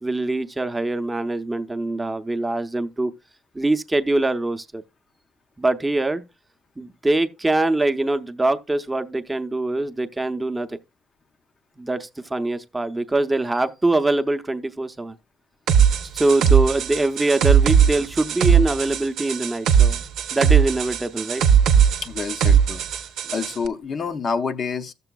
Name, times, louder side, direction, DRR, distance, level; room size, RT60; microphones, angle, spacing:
voice 1, 0.0-3.1 3.5-4.8 5.6-6.2 6.8-10.8 11.8-15.2 16.1-20.0 20.3-21.4, right 2 dB, 15° right, 0.6 m, -23 dB
sound 1, 15.7-23.5, right 8 dB, 85° right, 0.6 m, -18 dB
voice 2, 22.0-22.8 23.3-24.9, left 5 dB, 50° left, 0.6 m, -27 dB
13.5 x 6.8 x 2.3 m
cardioid pair, 90°, 0 cm